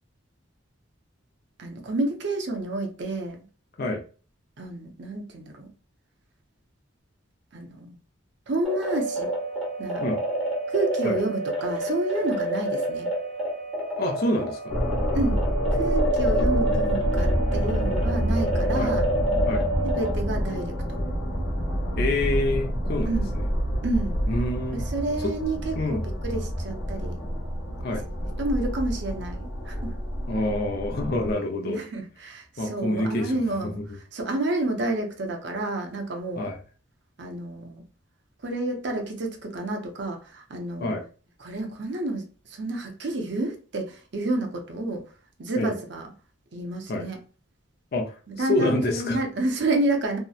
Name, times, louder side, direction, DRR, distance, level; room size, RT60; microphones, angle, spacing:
voice 1, 1.6-3.4 4.6-5.7 7.5-8.0 8.5-9.3 9.8-10.0 10.7-13.1 15.1-15.4 15.7-19.0 19.8-20.8 23.1-23.4 23.8-24.2 24.7-27.2 28.4-29.9 31.2-33.8 34.1-36.5 37.2-37.8 38.4-41.0 41.4-45.0 45.4-46.1 46.5-47.2 48.3-50.2, right 2 dB, 55° right, 0.5 m, -30 dB
sound 1, 8.6-20.1, right 1 dB, ahead, 0.7 m, -28 dB
voice 2, 14.0-14.7 18.8-18.9 19.4-19.6 22.0-23.4 24.3-24.9 25.2-25.3 25.7-26.0 27.8-28.0 30.3-31.8 32.6-33.3 33.6-33.7 36.4-36.6 40.8-41.0 45.6-45.7 46.9-47.1 47.9-49.2, left 1 dB, 50° left, 0.4 m, -27 dB
sound 2, 14.7-31.3, equal, 70° left, 0.9 m, -27 dB
2.7 x 2.0 x 2.3 m
head